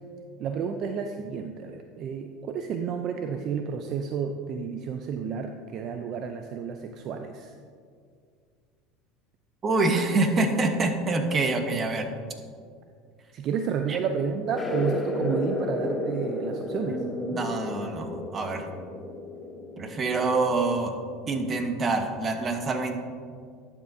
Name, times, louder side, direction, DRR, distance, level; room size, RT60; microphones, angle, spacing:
voice 1, 0.4-7.5 13.3-17.0, right 6 dB, 50° right, 6 dB, 0.4 m, -31 dB
voice 2, 9.6-12.1 13.9-14.0 16.9-18.7 19.8-20.9 21.3-23.0, right 3 dB, 30° right, 6 dB, 0.9 m, -26 dB
sound 1, 14.6-20.7, left 2 dB, 15° left, 1.0 m, -32 dB
11.5 x 7.3 x 2.7 m, 2.2 s
supercardioid pair, 105°, 0 cm